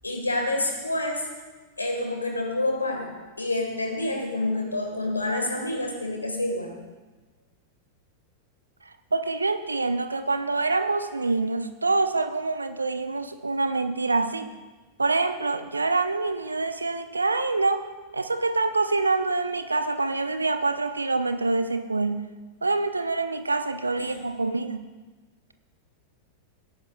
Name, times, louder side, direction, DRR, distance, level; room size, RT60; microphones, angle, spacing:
voice 1, 0.0-1.2 1.8-3.1 3.4-6.7 24.0-24.2, left 2 dB, 80° left, 2 dB, 2.0 m, -28 dB
voice 2, 9.1-14.5 15.0-17.8 18.1-22.3 22.6-24.9, right 3 dB, 80° right, 9 dB, 0.7 m, -26 dB
17.0 x 9.7 x 2.6 m, 1.3 s
figure-of-eight pair, 90°, 0 cm